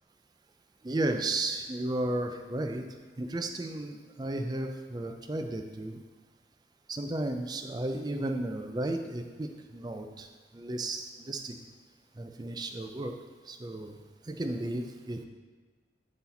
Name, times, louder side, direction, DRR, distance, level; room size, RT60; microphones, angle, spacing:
voice 1, 0.8-2.8 3.2-6.0 6.9-10.3 10.5-11.5 12.2-13.1 13.5-14.0 14.3-15.2, right 2 dB, 20° right, 5 dB, 0.4 m, -34 dB
8.3 x 4.2 x 4.0 m, 1.4 s
head